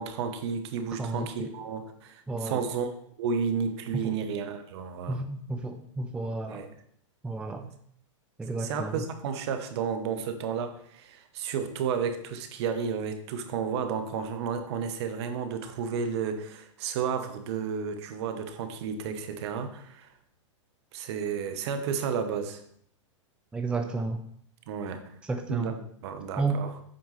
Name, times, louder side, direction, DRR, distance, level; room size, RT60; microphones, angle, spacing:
voice 1, 0.0-2.9 3.2-5.2 6.5-6.7 7.6-7.7 8.6-20.1 20.9-22.6 24.7-25.0 25.5-26.7, right 6 dB, 55° right, 7 dB, 1.1 m, -32 dB
voice 2, 1.0-1.5 2.3-2.6 4.0-4.1 5.1-6.6 7.2-7.6 8.4-9.1 23.5-24.2 25.2-25.7 26.4-26.6, right 3 dB, 5° right, 5 dB, 0.5 m, -32 dB
7.9 x 5.3 x 3.3 m, 0.65 s
hypercardioid pair, 120°, 16 cm